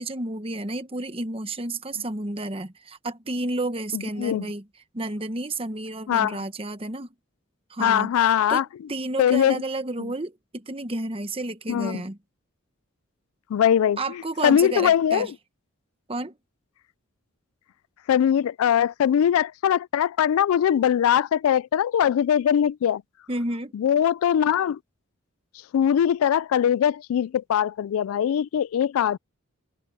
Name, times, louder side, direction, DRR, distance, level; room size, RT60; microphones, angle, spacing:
voice 1, 0.0-4.6 4.9-7.1 7.7-8.1 8.5-8.6 8.9-12.2 14.0-15.3 16.1-16.3 23.3-23.7, right 2 dB, 25° right, 1.1 m, -31 dB
voice 2, 3.9-4.5 6.1-6.4 7.8-8.6 9.2-9.6 10.0-10.1 11.7-12.0 13.5-15.3 18.1-23.0 23.7-24.8 25.7-29.2, left 9 dB, 85° left, 0.3 m, -21 dB
head